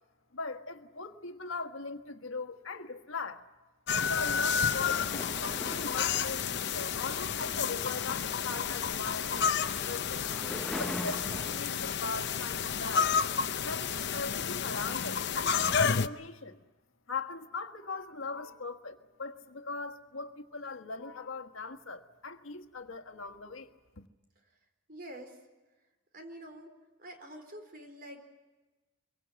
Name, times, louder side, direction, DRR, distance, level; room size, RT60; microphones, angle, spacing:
voice 1, 0.3-3.4 4.0-9.4 9.8-13.1 13.6-16.6 17.1-24.1, left 3 dB, 80° left, 1.5 m, -40 dB
sound 1, 3.9-16.1, left 7 dB, 60° left, 0.8 m, -31 dB
sound 2, 4.6-11.6, equal, 5° left, 0.8 m, -43 dB
voice 2, 24.9-25.4 26.1-26.7 27.0-28.2, right 1 dB, 50° right, 4.3 m, -46 dB
24.5 x 23.0 x 7.7 m
head